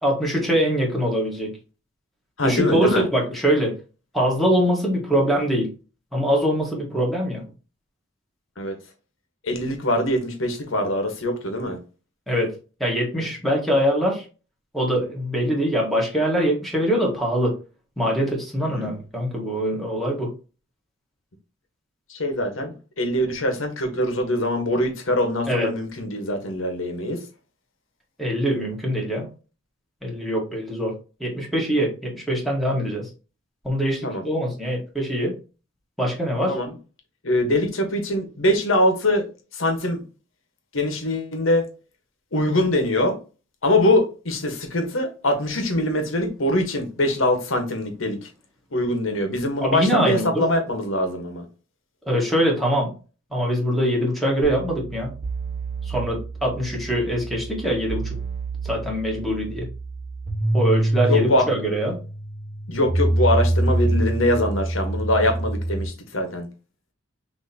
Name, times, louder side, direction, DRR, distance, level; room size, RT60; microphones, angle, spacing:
voice 1, 0.0-1.5 2.4-3.8 4.1-5.7 6.1-7.5 12.3-12.5 12.8-14.2 14.7-17.6 18.0-20.3 25.5-25.7 28.2-29.3 30.0-33.1 33.6-35.4 36.0-36.6 49.6-50.4 52.0-52.9 53.3-55.1 55.8-58.1 58.6-59.6 60.5-62.0, equal, ahead, 1.6 m, -23 dB
voice 2, 2.4-3.0 8.6-8.8 9.4-11.8 18.7-18.9 22.1-27.2 34.0-34.2 36.5-36.7 37.2-39.3 39.5-40.0 40.7-41.6 42.3-43.2 43.6-48.3 48.7-51.4 61.1-61.5 62.7-66.5, left 1 dB, 80° left, 1.3 m, -23 dB
sound 1, 54.4-65.9, right 1 dB, 40° right, 0.7 m, -26 dB
6.1 x 2.9 x 2.8 m
head